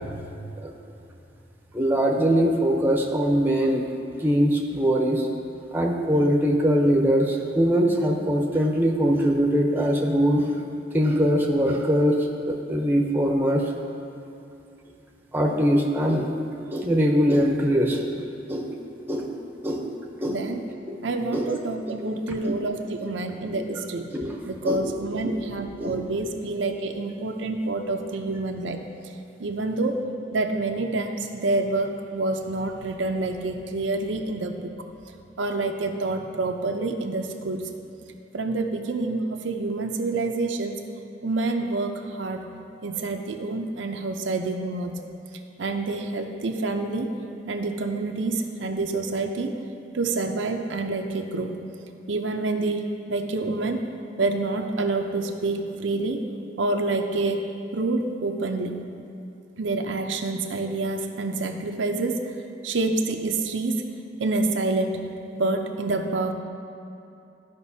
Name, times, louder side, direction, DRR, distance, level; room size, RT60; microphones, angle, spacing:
voice 1, 1.7-3.8 4.2-5.3 5.7-10.5 10.9-12.2 12.5-13.6 15.3-16.3 16.7-18.2 18.5-18.8 19.1-19.3 19.6-19.9 20.2-20.5 20.9-21.0 21.3-21.5 22.0-22.1 24.1-24.4 24.6-24.8 25.2-25.4 25.8-26.0, equal, 10° right, 0 dB, 0.7 m, -22 dB
voice 2, 20.3-20.6 21.0-24.1 24.5-28.8 29.4-30.0 30.3-34.7 35.4-37.7 38.3-40.8 41.2-42.4 42.8-45.0 45.6-47.1 47.5-49.5 49.9-51.6 52.1-53.8 54.2-56.2 56.6-58.8 59.6-62.3 62.6-63.9 64.2-66.3, right 2 dB, 90° right, 4 dB, 0.6 m, -27 dB
14.0 x 5.1 x 2.7 m, 2.7 s
head